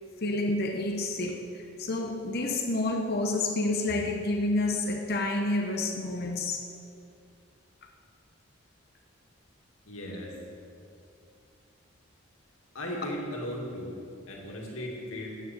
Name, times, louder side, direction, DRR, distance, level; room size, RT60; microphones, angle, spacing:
voice 1, 0.2-6.6, left 2 dB, 50° left, 3 dB, 0.9 m, -29 dB
voice 2, 9.9-10.3 12.7-13.9 14.3-15.4, left 1 dB, 85° left, -2 dB, 2.3 m, -36 dB
9.0 x 7.4 x 7.6 m, 2.5 s
head